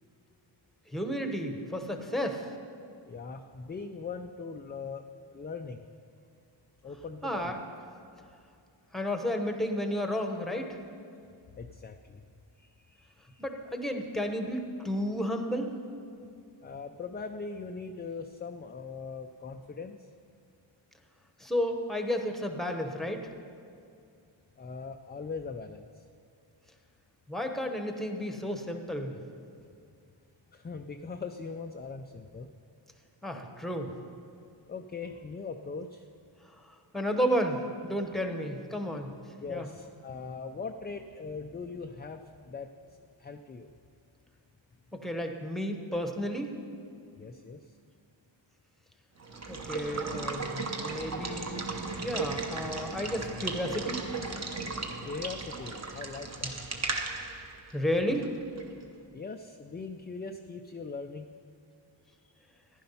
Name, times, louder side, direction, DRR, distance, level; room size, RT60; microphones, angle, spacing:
voice 1, 0.9-2.5 7.2-7.6 8.9-10.7 13.4-15.7 21.4-23.3 27.3-29.2 33.2-33.9 36.9-39.1 39.5-39.7 44.9-46.5 49.5-51.7 52.0-54.0 57.7-58.3, equal, ahead, 4 dB, 0.9 m, -32 dB
voice 2, 3.1-5.0 5.3-5.9 6.8-7.6 11.6-12.2 12.6-13.4 16.6-20.1 24.6-26.0 30.5-32.5 34.7-36.1 39.4-42.7 43.2-43.7 47.2-47.7 55.0-56.6 59.1-61.3, left 4 dB, 25° left, 5 dB, 0.3 m, -40 dB
Water / Water tap faucet / Liquid, 49.2-58.8, right 3 dB, 35° right, 1.0 m, -36 dB
14.5 x 10.5 x 5.5 m, 2.4 s
wide cardioid pair, 165°, 46 cm